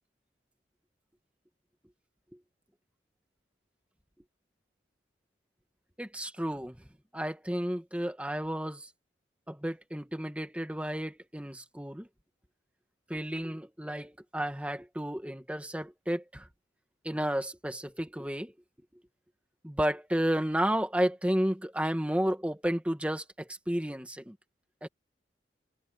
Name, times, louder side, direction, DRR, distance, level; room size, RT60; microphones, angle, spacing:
voice 1, 6.0-6.8 7.1-8.9 9.5-12.1 13.1-16.5 17.0-18.5 19.6-24.4 24.8-24.9, equal, 5° right, 1.7 m, -32 dB
head